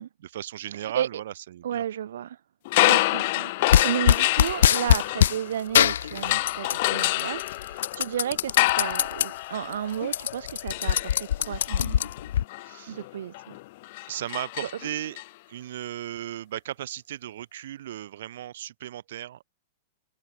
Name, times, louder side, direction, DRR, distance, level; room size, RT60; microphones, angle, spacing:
voice 1, 0.2-1.8 12.6-13.0 14.1-15.2 15.5-19.4, right 12 dB, 65° right, 7.9 m, -36 dB
voice 2, 1.6-2.4 2.9-12.0 12.9-13.6 14.6-14.7, right 10 dB, 80° right, 6.7 m, -33 dB
sound 1, 2.7-5.8 6.2-15.2, left 20 dB, 45° left, 8.0 m, -28 dB
sound 2, 3.7-5.4 5.7-6.9 7.2-9.3 9.7-9.8 10.0-12.4, left 10 dB, 80° left, 1.8 m, -22 dB
supercardioid pair, 170°, 0 cm